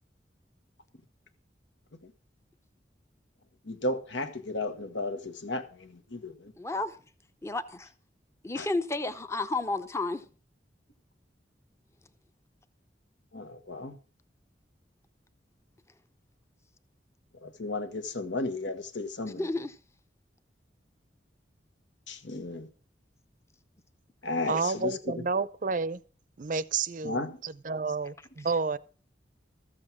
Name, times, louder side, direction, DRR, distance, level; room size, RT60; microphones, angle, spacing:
voice 1, 3.6-6.5 8.6-8.7 13.3-14.0 17.3-19.5 22.1-22.7 24.2-25.2 27.0-27.4, left 2 dB, 85° left, 1.5 m, -34 dB
voice 2, 6.6-7.0 7.4-7.9 8.4-10.3 19.4-19.8, left 2 dB, 15° left, 0.6 m, -31 dB
voice 3, 24.5-26.0 26.4-28.8, right 4 dB, 45° right, 0.6 m, -30 dB
13.5 x 7.6 x 6.0 m
head